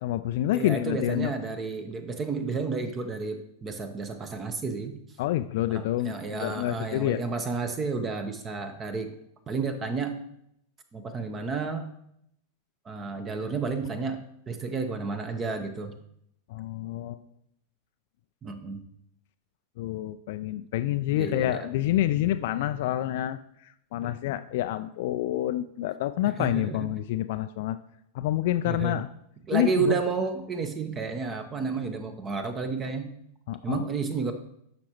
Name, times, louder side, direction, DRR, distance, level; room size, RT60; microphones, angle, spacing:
voice 1, 0.0-1.3 5.2-6.1 6.4-7.2 16.5-17.2 19.8-27.8 28.1-29.1 29.5-30.0 33.5-33.9, left 13 dB, 50° left, 9 dB, 0.3 m, -28 dB
voice 2, 0.5-5.0 5.7-9.1 9.5-10.2 10.9-11.9 12.8-15.9 18.4-18.8 21.2-21.7 24.0-24.1 26.4-26.9 28.7-29.0 29.5-33.1 33.6-34.3, right 4 dB, 25° right, 8 dB, 0.8 m, -31 dB
11.5 x 6.0 x 3.0 m, 0.74 s
figure-of-eight pair, 90°, 0 cm